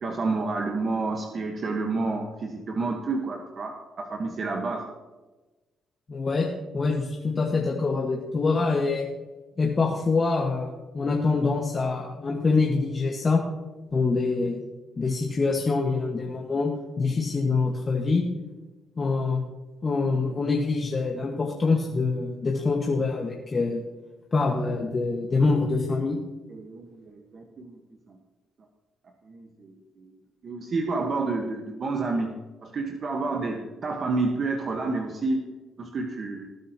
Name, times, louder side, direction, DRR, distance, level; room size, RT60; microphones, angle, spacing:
voice 1, 0.0-4.8 26.5-27.7 28.1-28.2 29.3-30.1 30.4-32.3 32.6-36.5, right 3 dB, 50° right, 2 dB, 1.3 m, -29 dB
voice 2, 6.1-6.5 6.7-9.1 9.6-13.4 13.9-14.6 15.0-18.2 19.0-19.4 19.8-23.8 24.3-26.2, left 4 dB, 35° left, -1 dB, 1.6 m, -25 dB
19.0 x 9.9 x 3.0 m, 1.2 s
cardioid pair, 90°, 0 cm